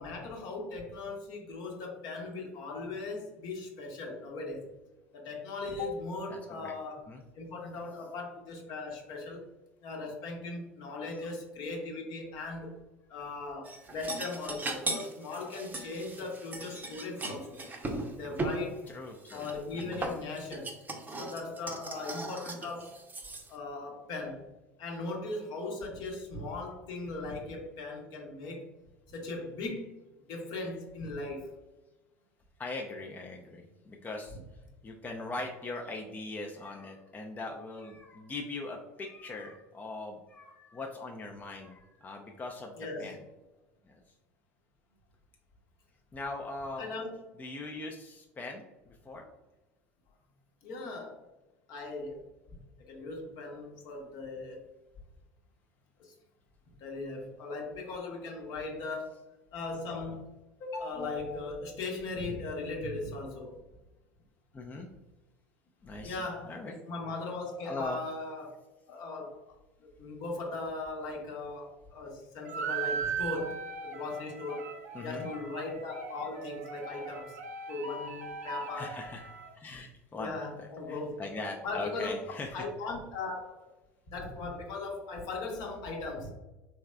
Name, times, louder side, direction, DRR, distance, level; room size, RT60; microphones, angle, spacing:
voice 1, 0.0-4.7 5.1-7.1 7.3-9.5 9.8-12.7 13.1-17.6 18.1-18.9 19.3-20.7 21.2-23.0 23.5-24.5 24.8-28.7 29.1-31.5 34.3-34.4 42.8-43.2 46.8-47.1 50.6-51.2 51.7-52.2 52.9-54.6 56.0-56.1 56.8-59.2 59.5-60.3 60.6-63.6 66.0-68.5 68.9-74.7 75.0-77.4 77.7-79.0 80.1-81.1 81.6-82.1 82.5-83.7 84.1-86.3, left 3 dB, 55° left, 1 dB, 0.9 m, -38 dB
voice 2, 6.3-6.7 7.1-7.2 11.1-11.3 18.9-19.5 19.8-20.0 32.6-34.4 34.8-43.2 43.9-44.0 46.1-46.9 47.4-49.2 64.5-64.9 65.8-66.8 67.6-68.0 74.9-75.3 78.7-79.2 79.5-80.3 80.9-82.6, left 2 dB, 20° left, 1 dB, 0.5 m, -41 dB
sound 1, 13.6-18.6 19.2-23.5, right 2 dB, 20° right, 0.7 m, -38 dB
sound 2, 72.5-79.5, right 5 dB, 85° right, 0.4 m, -38 dB
3.5 x 3.1 x 2.2 m, 1.1 s
hypercardioid pair, 75°, 8 cm